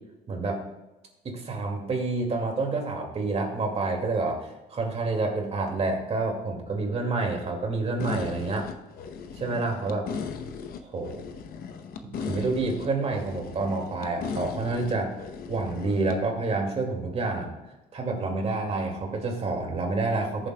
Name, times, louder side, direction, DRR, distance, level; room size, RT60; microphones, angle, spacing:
voice 1, 0.3-0.6 1.2-8.7 9.4-10.1 10.8-11.2 12.0-15.1 15.5-17.5 17.9-20.5, right 3 dB, 40° right, 1 dB, 2.3 m, -28 dB
sound 1, 8.0-16.2, left 6 dB, 60° left, 0.9 m, -37 dB
14.0 x 7.2 x 2.3 m, 1.0 s
cardioid pair, 110°, 17 cm